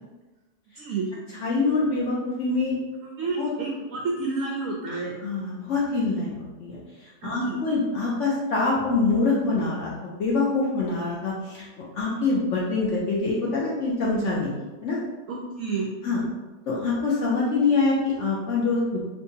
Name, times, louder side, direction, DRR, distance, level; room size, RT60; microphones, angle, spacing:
voice 1, 0.7-1.1 3.0-5.2 7.2-7.6 15.3-15.9, right 4 dB, 70° right, -2 dB, 0.8 m, -30 dB
voice 2, 1.3-2.8 3.4-3.5 5.2-6.8 7.2-11.7 11.9-14.5 14.8-15.0 16.0-16.2 16.7-19.0, left 3 dB, 65° left, -5 dB, 0.7 m, -25 dB
3.6 x 3.0 x 2.7 m, 1.2 s
omnidirectional pair, 1.8 m